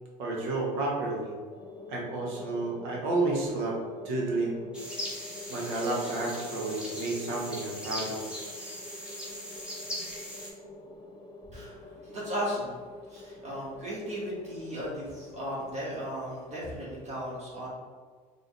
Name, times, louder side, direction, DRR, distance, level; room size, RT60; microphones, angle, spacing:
voice 1, 0.2-1.4 1.9-4.6 5.5-8.2, right 2 dB, 65° right, -2 dB, 1.1 m, -31 dB
sound 1, 1.5-16.2, left 2 dB, 20° left, 0.5 m, -46 dB
sound 2, 4.7-10.5, equal, 5° right, 1.2 m, -40 dB
voice 2, 11.5-12.7 13.1-17.7, equal, 30° right, -6 dB, 1.4 m, -36 dB
3.9 x 2.3 x 3.2 m, 1.5 s
hypercardioid pair, 65°, 21 cm